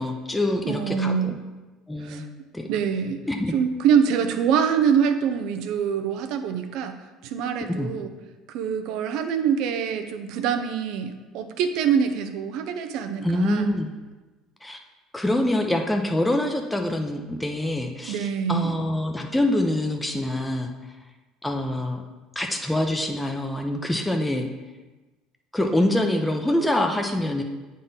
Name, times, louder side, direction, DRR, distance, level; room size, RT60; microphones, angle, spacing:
voice 1, 0.0-1.3 1.9-2.2 2.5-2.7 3.3-3.6 7.6-7.9 13.2-13.9 14.6-14.8 15.1-20.7 21.4-22.0 22.4-24.5 25.5-27.4, left 1 dB, 5° left, 3 dB, 0.7 m, -25 dB
voice 2, 0.6-1.3 2.0-2.2 2.7-3.2 3.5-7.0 7.2-8.1 8.5-13.7 18.0-18.7, right 7 dB, 70° right, 7 dB, 0.6 m, -24 dB
8.5 x 3.8 x 4.0 m, 1.2 s
hypercardioid pair, 75°, 0 cm